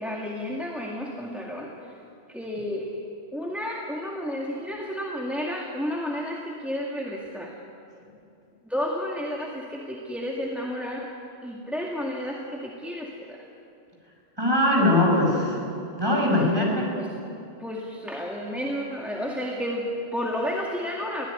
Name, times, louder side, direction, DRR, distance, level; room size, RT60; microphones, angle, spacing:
voice 1, 0.0-1.9 2.3-3.0 3.3-7.6 8.6-11.2 11.4-13.4 16.1-16.7 17.0-17.1 17.6-21.3, equal, ahead, -2 dB, 2.1 m, -32 dB
voice 2, 14.4-15.6 16.0-16.9, left 1 dB, 25° right, -2 dB, 5.9 m, -21 dB
22.5 x 16.5 x 9.2 m, 2.6 s
omnidirectional pair, 1.1 m